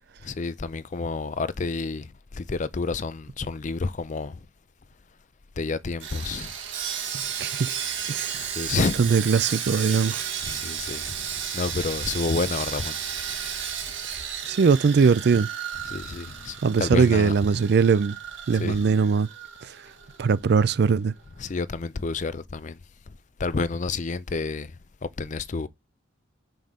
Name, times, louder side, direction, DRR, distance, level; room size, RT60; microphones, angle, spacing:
voice 1, 0.2-4.5 5.6-6.5 8.4-9.1 10.4-11.3 11.5-13.0 15.8-17.4 18.5-18.8 21.4-22.8 23.4-24.7 25.0-25.7, left 4 dB, 40° left, 0.5 m, -29 dB
Sawing, 6.0-20.3 20.5-20.7 21.2-21.3, right 8 dB, 75° right, 1.4 m, -33 dB
voice 2, 7.1-7.8 8.1-8.5 8.8-10.3 14.5-15.5 16.6-18.2 18.5-19.3 19.6-19.8 20.2-21.1, right 5 dB, 55° right, 0.4 m, -21 dB
5.7 x 5.4 x 3.6 m
head